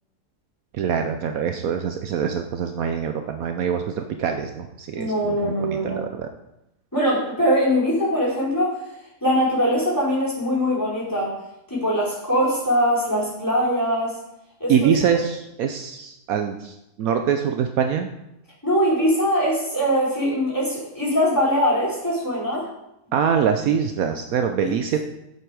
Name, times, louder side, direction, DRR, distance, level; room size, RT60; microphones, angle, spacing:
voice 1, 0.7-6.3 14.7-18.1 23.1-25.0, right 7 dB, 70° right, 6 dB, 1.1 m, -24 dB
voice 2, 4.9-6.0 6.9-8.8 9.2-11.3 11.7-14.2 14.6-14.8 18.6-22.7 24.6-24.7, equal, 10° left, -6 dB, 4.2 m, -22 dB
8.0 x 7.8 x 4.8 m, 0.87 s
omnidirectional pair, 1.6 m